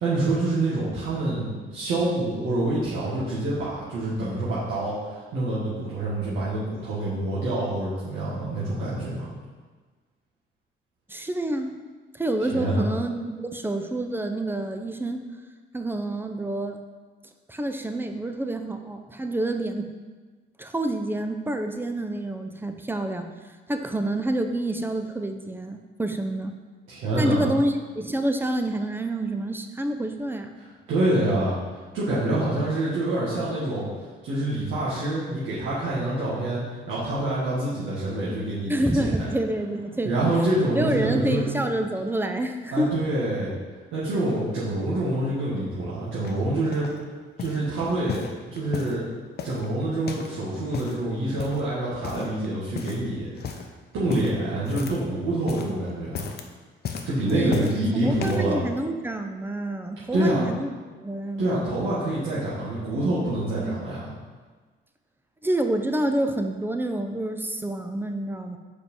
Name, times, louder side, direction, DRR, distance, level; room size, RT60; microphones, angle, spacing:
voice 1, 0.0-9.3 12.5-12.9 26.9-27.5 30.9-31.6 31.9-33.9 34.2-36.6 36.9-39.3 40.0-41.5 42.7-43.5 43.9-46.9 47.4-49.0 49.4-53.6 53.9-56.3 57.0-58.6 60.1-60.4 61.4-64.1, right 1 dB, 90° right, -10 dB, 1.7 m, -26 dB
voice 2, 11.1-11.7 12.1-15.2 15.7-16.8 17.5-19.9 20.6-23.3 23.7-26.6 27.1-30.5 38.7-40.3 40.7-42.9 57.3-57.7 58.0-60.7 61.0-61.7 63.5-64.0 65.4-68.6, right 1 dB, 10° right, 6 dB, 0.6 m, -28 dB
sound 1, 46.2-47.0 47.4-47.7 48.1-49.0 49.4-50.4 50.6-51.0 51.4-51.7 52.0-52.5 52.8-53.1 53.4-53.7 54.1-55.1 55.4-55.8 56.1-56.5 56.8-57.8 58.2-58.5 59.2-59.3, left 6 dB, 55° left, 0.7 m, -35 dB
5.2 x 4.6 x 5.4 m, 1.4 s
cardioid pair, 90°, 20 cm